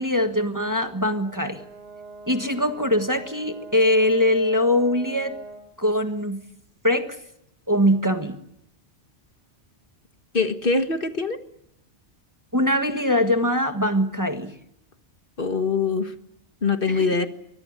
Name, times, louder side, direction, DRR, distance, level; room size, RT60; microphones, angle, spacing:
voice 1, 0.0-1.6 2.3-5.3 5.8-6.4 6.8-7.1 7.7-8.4 12.5-14.5 16.9-17.1, left 1 dB, 15° right, 6 dB, 1.5 m, -22 dB
Brass instrument, 1.2-5.7, right 3 dB, 65° right, 5.7 m, -42 dB
voice 2, 10.3-11.4 15.4-16.1 16.6-17.3, left 4 dB, 50° left, 8 dB, 1.7 m, -23 dB
23.5 x 19.5 x 9.9 m, 0.80 s
omnidirectional pair, 1.2 m